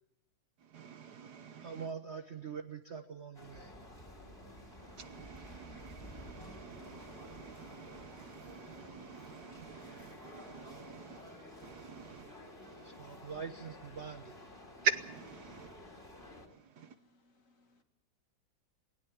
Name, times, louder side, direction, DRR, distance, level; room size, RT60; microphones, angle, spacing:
voice 1, 0.7-1.9 5.0-11.2 11.6-12.3 14.8-15.7, right 7 dB, 60° right, 11 dB, 1.5 m, -42 dB
voice 2, 1.6-3.7 12.8-14.3, right 6 dB, 45° right, 7 dB, 1.0 m, -44 dB
sound 1, 3.3-16.5, left 1 dB, 25° left, 3.8 m, -52 dB
voice 3, 16.8-17.8, left 2 dB, 45° left, 5 dB, 2.4 m, -69 dB
19.5 x 17.5 x 8.7 m, 0.83 s
omnidirectional pair, 2.1 m